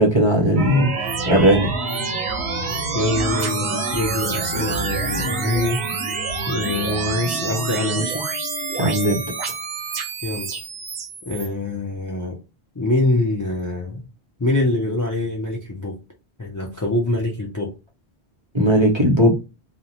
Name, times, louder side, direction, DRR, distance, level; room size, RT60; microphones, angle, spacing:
voice 1, 0.0-1.7 8.7-9.2 18.5-19.3, equal, 35° right, 0.6 m, -17 dB
sound 1, 0.6-11.5, right 4 dB, 85° right, 0.9 m, -27 dB
voice 2, 2.9-5.8 6.5-8.3 10.2-10.5 11.2-12.4 12.8-14.0 14.4-16.0 16.4-17.7, left 2 dB, 30° left, 0.3 m, -24 dB
2.5 x 2.1 x 2.8 m
omnidirectional pair, 1.1 m